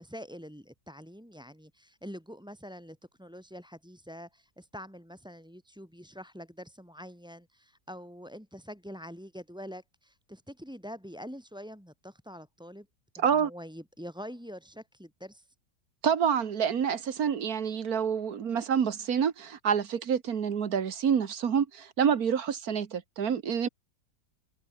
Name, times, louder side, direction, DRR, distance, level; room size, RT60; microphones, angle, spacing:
voice 1, 0.0-12.9 13.2-15.5, equal, ahead, 4.8 m, -45 dB
voice 2, 13.2-13.5 16.0-23.7, right 7 dB, 55° right, 1.8 m, -27 dB
omnidirectional pair, 1.9 m